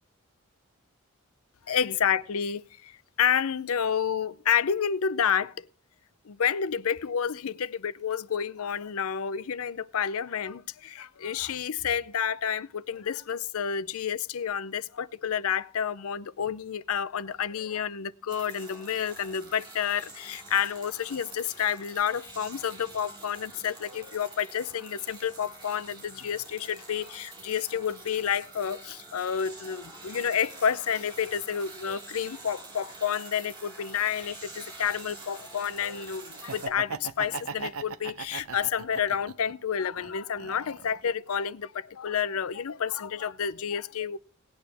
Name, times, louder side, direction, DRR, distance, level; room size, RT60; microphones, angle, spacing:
voice 1, 1.7-5.7 6.3-44.2, left 8 dB, 80° left, 0.5 m, -30 dB
sound 1, 18.3-36.7, right 3 dB, 20° right, 2.4 m, -47 dB
Laughter, 36.3-39.5 40.0-41.1, right 5 dB, 75° right, 0.7 m, -38 dB
18.0 x 8.9 x 3.4 m
head